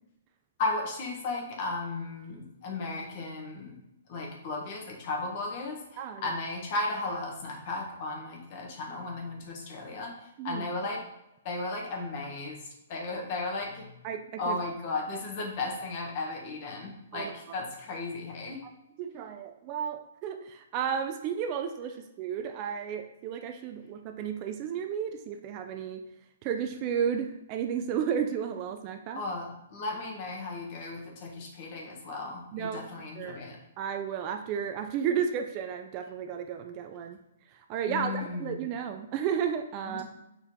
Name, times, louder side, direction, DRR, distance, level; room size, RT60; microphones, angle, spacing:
voice 1, 0.6-3.8 4.1-11.0 11.4-12.6 12.9-14.0 14.4-18.6 29.1-33.6 37.9-38.7 39.9-40.0, left 2 dB, 40° left, 1 dB, 1.6 m, -35 dB
voice 2, 6.0-6.3 10.4-10.7 14.0-14.6 17.1-17.6 18.6-18.7 19.0-26.0 26.4-29.2 32.5-32.8 33.2-33.4 33.8-37.2 37.5-40.0, right 8 dB, 30° right, 6 dB, 0.5 m, -33 dB
6.9 x 4.4 x 3.7 m, 0.86 s
hypercardioid pair, 155°, 0 cm